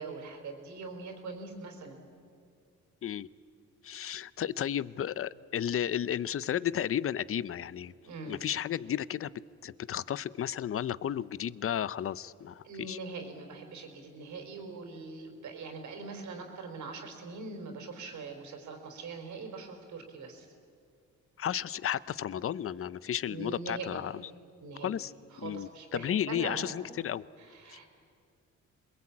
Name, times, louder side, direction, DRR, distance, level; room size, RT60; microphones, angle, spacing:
voice 1, 0.0-2.0 8.0-8.4 12.6-20.5 23.3-24.0 24.6-24.9 25.3-26.7 27.4-27.9, right 4 dB, 70° right, 4 dB, 4.5 m, -42 dB
voice 2, 3.8-7.9 8.3-9.3 9.6-13.0 21.4-24.2 24.8-25.1 25.4-27.2 27.7-27.8, left 10 dB, 45° left, 18 dB, 0.7 m, -33 dB
27.5 x 21.5 x 8.7 m, 2.3 s
cardioid pair, 90°, 30 cm